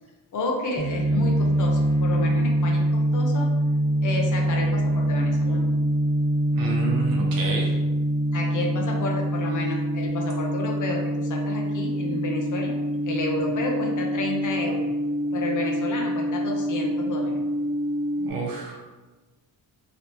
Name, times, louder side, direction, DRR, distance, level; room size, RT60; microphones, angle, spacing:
voice 1, 0.3-3.6 4.0-5.7 8.3-12.8 13.1-14.9 15.3-17.4, left 2 dB, 50° left, 1 dB, 0.7 m, -31 dB
sound 1, 0.8-18.3, right 1 dB, 20° right, 0.4 m, -24 dB
voice 2, 6.5-7.7 18.2-18.8, right 4 dB, 60° right, -2 dB, 1.0 m, -29 dB
3.0 x 2.8 x 3.0 m, 1.2 s
cardioid pair, 115°, 39 cm